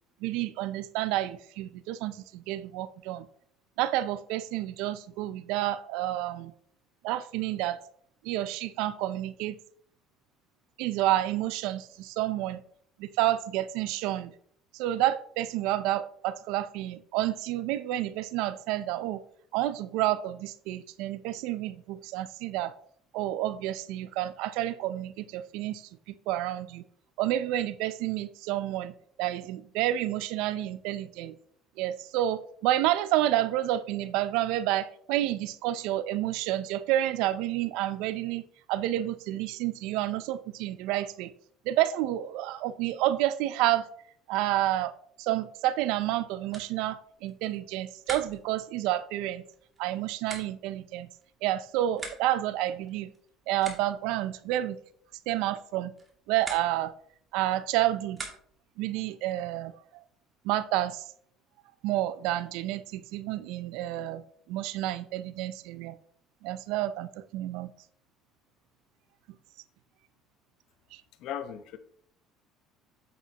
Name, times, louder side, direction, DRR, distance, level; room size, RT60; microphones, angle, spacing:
voice 1, 0.2-3.3 3.8-6.5 7.0-7.8 8.2-9.6 10.8-12.6 13.0-14.3 14.7-19.2 19.5-22.7 23.1-26.8 27.2-28.9 29.2-31.3 31.8-38.4 38.7-41.3 41.7-43.9 44.3-44.9 45.2-49.4 49.8-51.1 51.4-53.1 53.5-54.8 55.3-55.9 56.3-56.9 57.3-58.3 58.8-60.0 60.4-61.0 61.8-64.2 64.5-66.0 66.4-67.7 70.9-71.0, right 14 dB, 80° right, 15 dB, 0.5 m, -29 dB
sound 1, 46.4-58.8, right 3 dB, 25° right, 2.5 m, -47 dB
voice 2, 71.2-71.8, left 9 dB, 70° left, 10 dB, 0.9 m, -37 dB
8.5 x 8.0 x 2.9 m, 0.63 s
supercardioid pair, 95°, 0 cm